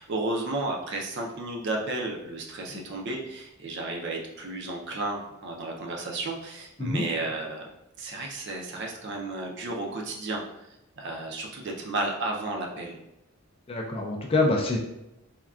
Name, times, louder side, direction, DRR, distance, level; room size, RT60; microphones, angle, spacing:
voice 1, 0.0-7.6 8.0-13.0, right 2 dB, 50° right, 0 dB, 0.5 m, -33 dB
voice 2, 13.7-14.8, left 2 dB, 25° left, 0 dB, 0.3 m, -26 dB
3.6 x 2.2 x 2.3 m, 0.87 s
head